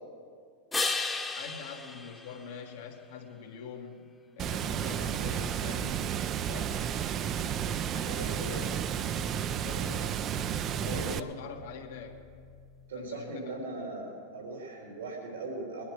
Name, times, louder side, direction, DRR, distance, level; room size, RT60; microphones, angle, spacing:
sound 1, 0.7-3.3 9.0-13.0, left 3 dB, 15° left, 1.0 m, -38 dB
voice 1, 1.4-6.8 7.8-10.3 10.8-12.2 12.9-13.6, left 6 dB, 70° left, 2 dB, 1.8 m, -44 dB
Water, 4.4-11.2, right 9 dB, 35° right, 0.5 m, -32 dB
voice 2, 8.0-8.5 10.9-11.2 12.9-15.8, right 2 dB, 85° right, -1 dB, 3.2 m, -39 dB
20.5 x 10.5 x 4.7 m, 2.1 s
hypercardioid pair, 105°, 0 cm